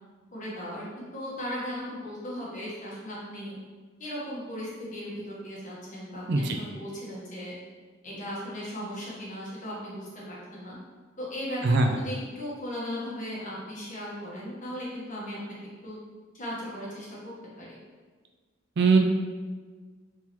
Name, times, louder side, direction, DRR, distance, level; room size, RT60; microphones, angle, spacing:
voice 1, 0.3-0.8 1.1-3.6 4.0-7.5 8.0-10.8 11.2-11.6 12.0-15.4 15.8-16.0 16.3-17.2 17.6-17.8, equal, 40° left, -6 dB, 1.4 m, -37 dB
voice 2, 6.3-6.6 11.6-12.0 18.8-19.0, right 3 dB, 60° right, 4 dB, 0.5 m, -21 dB
4.2 x 3.8 x 3.0 m, 1.4 s
head